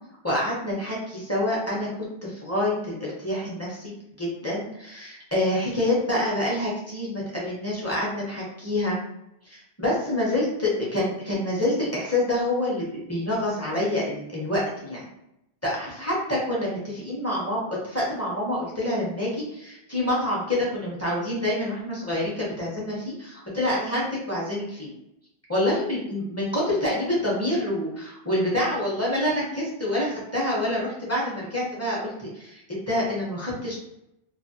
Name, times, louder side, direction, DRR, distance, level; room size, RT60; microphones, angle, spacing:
voice 1, 0.2-1.9 2.2-9.0 9.5-15.1 15.6-24.9 25.5-33.8, left 1 dB, 15° left, -6 dB, 0.6 m, -27 dB
2.3 x 2.1 x 2.7 m, 0.83 s
omnidirectional pair, 1.2 m